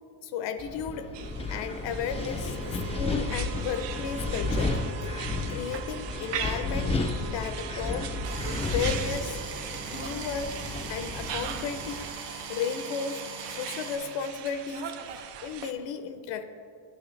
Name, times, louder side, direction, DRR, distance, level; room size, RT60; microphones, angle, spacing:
voice 1, 0.2-1.1 1.5-4.8 5.0-5.1 5.5-6.9 7.2-8.1 8.7-9.4 9.9-10.6 10.9-13.2 13.5-15.0 15.4-16.4, left 6 dB, 65° left, 10 dB, 0.6 m, -34 dB
Wind, 0.6-12.1, left 3 dB, 15° left, 0.4 m, -33 dB
sound 1, 1.1-15.7, right 9 dB, 60° right, 0.6 m, -40 dB
sound 2, 8.2-14.0, right 5 dB, 85° right, 1.1 m, -40 dB
11.5 x 5.8 x 3.2 m, 2.4 s
cardioid pair, 125°, 48 cm